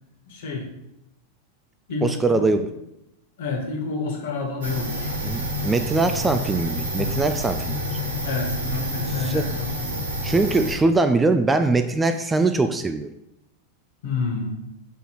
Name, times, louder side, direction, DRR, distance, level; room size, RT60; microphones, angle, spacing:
voice 1, 0.3-0.7 1.9-2.5 3.4-5.1 8.2-9.9 14.0-14.6, left 4 dB, 55° left, 1 dB, 1.6 m, -29 dB
voice 2, 2.0-2.7 5.2-7.8 9.2-9.5 10.2-13.1, right 3 dB, 10° right, 9 dB, 0.3 m, -22 dB
sound 1, 4.6-10.7, equal, 65° right, 1.3 m, -28 dB
6.8 x 3.8 x 4.6 m, 0.84 s
figure-of-eight pair, 90°, 0 cm